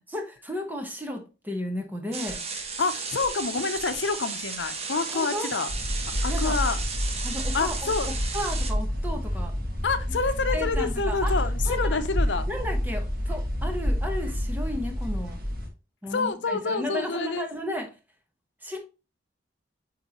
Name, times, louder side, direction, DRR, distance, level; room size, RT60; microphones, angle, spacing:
voice 1, 0.1-2.4 5.1-5.5 6.3-6.6 7.2-7.8 8.3-9.5 10.5-11.3 11.6-11.8 12.5-15.4 16.0-17.9 18.6-18.8, left 1 dB, 10° right, 3 dB, 1.2 m, -33 dB
sound 1, 2.1-8.7, right 5 dB, 35° right, 1.0 m, -34 dB
voice 2, 2.8-5.7 6.2-6.8 7.5-8.2 9.8-12.5 16.1-17.5, left 4 dB, 80° left, 9 dB, 0.7 m, -28 dB
sound 2, 5.7-15.7, equal, 60° right, 1.9 m, -28 dB
8.7 x 3.7 x 3.0 m, 0.30 s
head